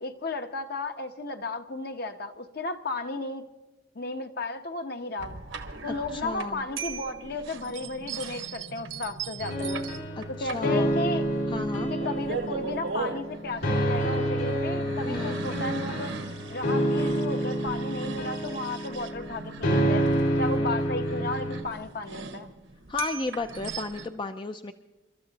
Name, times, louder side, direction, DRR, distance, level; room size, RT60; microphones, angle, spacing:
voice 1, 0.0-3.4 3.9-5.4 5.8-9.9 10.4-11.2 11.9-16.1 16.5-22.5, left 2 dB, 50° left, 7 dB, 1.0 m, -34 dB
sound 1, 5.2-24.1, right 4 dB, 80° right, 1.4 m, -39 dB
voice 2, 6.1-6.6 10.2-11.0 11.5-11.9 15.1-15.4 22.9-24.7, left 3 dB, 25° left, 7 dB, 0.4 m, -33 dB
sound 2, 9.4-21.6, right 1 dB, 75° left, 3.8 m, -28 dB
30.0 x 13.0 x 2.9 m, 1.1 s
head